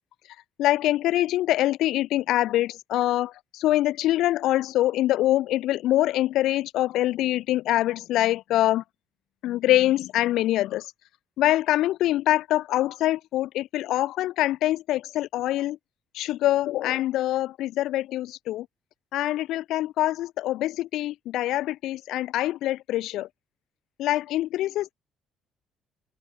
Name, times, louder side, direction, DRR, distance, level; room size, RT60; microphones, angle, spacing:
voice 1, 0.6-8.8 9.4-10.9 11.4-15.8 16.1-18.7 19.1-23.3 24.0-24.9, left 14 dB, 70° left, 4.0 m, -24 dB
open air
cardioid pair, 155°, 0 cm